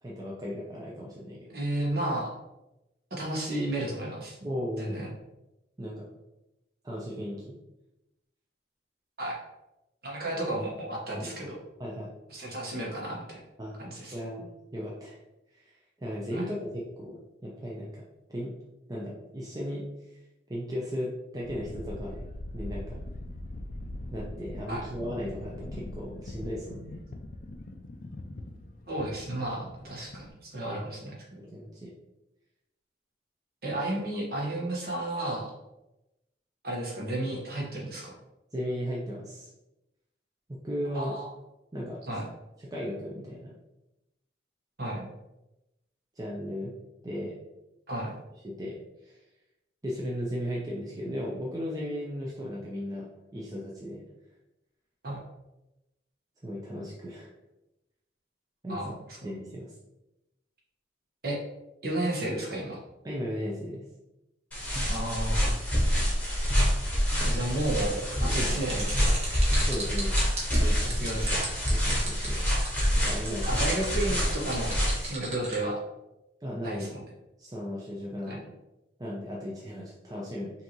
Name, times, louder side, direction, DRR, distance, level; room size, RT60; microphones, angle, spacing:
voice 1, 0.0-1.5 4.4-5.0 5.8-6.1 6.8-7.6 11.2-11.3 11.8-12.1 13.6-13.8 14.1-15.2 15.5-15.6 16.0-18.0 18.3-18.5 18.9-19.9 20.5-22.3 22.5-23.0 24.1-27.0 31.4-31.9 38.5-39.5 40.6-41.2 41.7-42.0 42.6-43.5 46.2-46.7 47.0-47.3 48.4-49.2 49.8-54.0 56.4-57.3 58.6-58.8 59.2-59.7 63.0-63.8 68.2-68.4 69.7-70.2 71.7-72.4 73.0-73.5 76.4-76.9 77.4-78.5 79.0-80.5, equal, 20° right, -4 dB, 0.6 m, -36 dB
voice 2, 1.5-2.3 3.1-4.5 4.8-5.1 9.2-9.4 10.0-11.6 12.3-13.4 13.8-14.1 16.3-16.5 24.7-24.9 28.9-31.2 33.6-35.5 36.6-38.1 40.9-41.3 42.1-42.3 44.8-45.1 47.9-48.1 55.0-55.2 58.7-59.0 61.2-61.4 61.8-62.8 64.9-65.5 67.2-69.5 70.5-71.5 73.4-74.7 75.0-75.8 76.6-77.0 78.3-78.4, right 1 dB, 55° right, -3 dB, 1.2 m, -32 dB
sound 1, 21.4-30.3, left 1 dB, 45° left, 0.4 m, -41 dB
sound 2, 64.5-75.1, equal, 10° left, 1.1 m, -27 dB
sound 3, 68.7-75.6, right 3 dB, 35° right, 1.3 m, -37 dB
5.6 x 2.7 x 3.0 m, 0.95 s
head